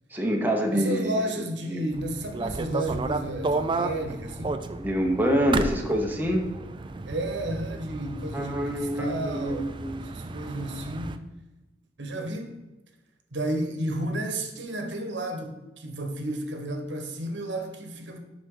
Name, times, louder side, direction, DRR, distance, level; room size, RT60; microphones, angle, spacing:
voice 1, 0.1-1.3 1.7-1.8 4.8-6.4 8.3-10.0, equal, 10° right, 0.9 m, -26 dB
voice 2, 0.7-4.6 7.1-11.3 12.0-12.6 13.3-18.2, right 1 dB, 80° right, 1.2 m, -32 dB
sound 1, 1.9-11.2, right 3 dB, 30° right, 0.4 m, -33 dB
8.0 x 6.0 x 3.8 m
head